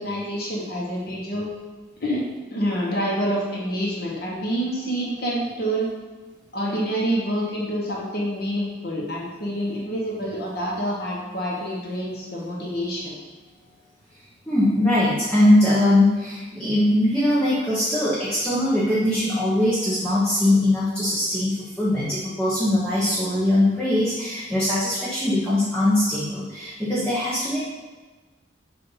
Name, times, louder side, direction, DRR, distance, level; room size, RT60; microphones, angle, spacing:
voice 1, 0.0-1.5 2.0-2.2 2.5-5.9 6.5-13.1, equal, 50° left, -4 dB, 1.1 m, -27 dB
voice 2, 14.5-27.6, left 1 dB, 5° left, -10 dB, 1.0 m, -21 dB
6.9 x 2.7 x 5.6 m, 1.3 s
head